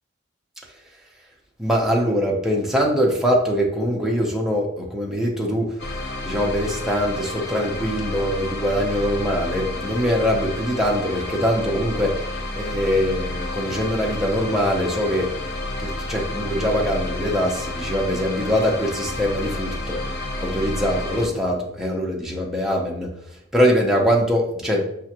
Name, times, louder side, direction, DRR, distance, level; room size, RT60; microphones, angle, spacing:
voice 1, 1.6-5.7 6.2-15.3 15.8-20.0 20.4-23.1 23.5-24.8, equal, ahead, -2 dB, 0.6 m, -23 dB
sound 1, 5.8-21.3, left 1 dB, 60° left, 0.6 m, -30 dB
5.4 x 2.4 x 2.9 m, 0.76 s
head